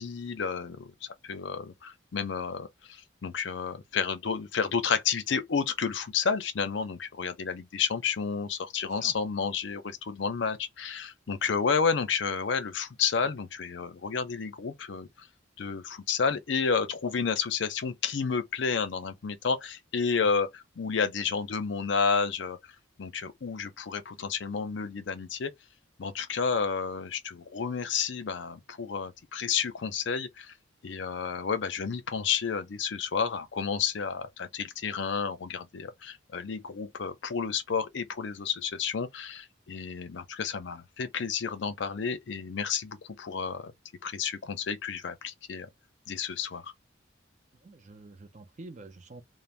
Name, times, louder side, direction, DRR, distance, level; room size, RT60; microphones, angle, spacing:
voice 1, 0.0-15.3 15.6-22.7 23.0-25.5 26.0-30.5 30.8-43.7 44.0-45.7 46.1-46.7, left 6 dB, 65° left, 0.5 m, -31 dB
voice 2, 47.6-49.2, right 2 dB, 35° right, 0.4 m, -47 dB
2.5 x 2.0 x 3.2 m
head